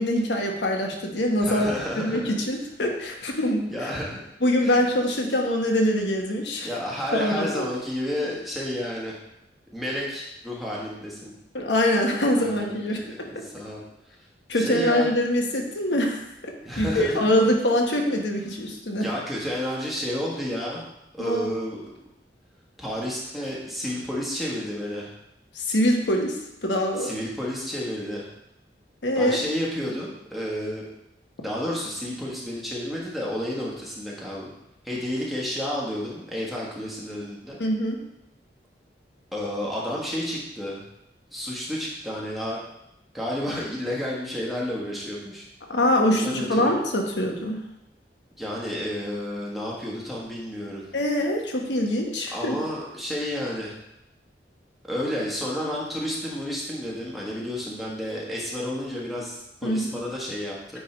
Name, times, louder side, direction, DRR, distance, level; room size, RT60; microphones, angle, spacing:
voice 1, 0.0-1.7 2.0-3.9 4.4-6.7 7.1-7.6 11.5-13.3 14.5-19.1 21.2-21.5 25.5-26.4 26.6-27.1 29.0-29.4 37.6-38.0 45.7-47.6 50.9-52.6 59.6-59.9, left 1 dB, 85° left, 1 dB, 1.2 m, -24 dB
voice 2, 1.4-2.3 3.7-4.2 4.6-4.8 6.6-9.2 9.7-11.3 12.4-13.8 14.5-15.1 16.6-17.2 19.0-20.9 21.1-21.9 22.8-25.1 27.0-28.3 29.2-30.8 31.4-34.5 34.8-37.6 39.3-40.8 41.3-42.6 43.1-45.5 46.1-46.8 48.4-50.8 52.3-53.8 54.9-60.8, equal, ahead, -5 dB, 1.4 m, -31 dB
9.2 x 3.6 x 4.4 m, 0.86 s
head